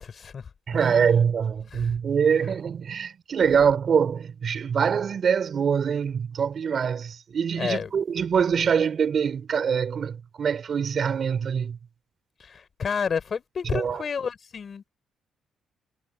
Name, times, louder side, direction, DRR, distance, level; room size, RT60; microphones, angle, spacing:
voice 1, 0.0-1.1 1.7-1.9 7.6-7.9 12.4-14.8, left 6 dB, 45° left, 3.9 m, -31 dB
voice 2, 0.7-11.8 13.6-14.0, right 7 dB, 50° right, 3.6 m, -24 dB
cardioid pair, 90°, 0 cm